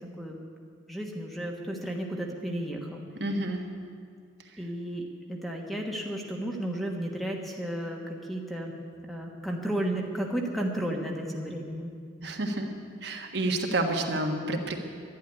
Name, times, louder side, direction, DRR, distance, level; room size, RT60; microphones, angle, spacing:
voice 1, 0.9-3.0 4.6-8.7 9.1-11.9, right 1 dB, ahead, 0 dB, 1.3 m, -33 dB
voice 2, 3.2-3.7 4.5-4.6 12.2-12.7 13.0-14.8, right 2 dB, 60° right, 3 dB, 1.5 m, -29 dB
11.5 x 11.5 x 9.8 m, 2.2 s
head